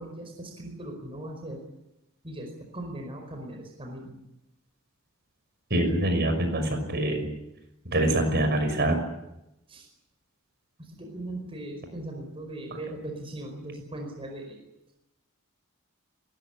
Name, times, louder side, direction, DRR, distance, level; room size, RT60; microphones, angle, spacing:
voice 1, 0.0-1.6 2.2-4.1 9.7-9.9 10.8-14.6, right 1 dB, 25° right, 2 dB, 4.8 m, -39 dB
voice 2, 5.7-7.3 7.9-9.0 12.7-12.8, right 1 dB, 50° right, 6 dB, 6.2 m, -25 dB
21.0 x 19.5 x 10.0 m, 0.89 s
head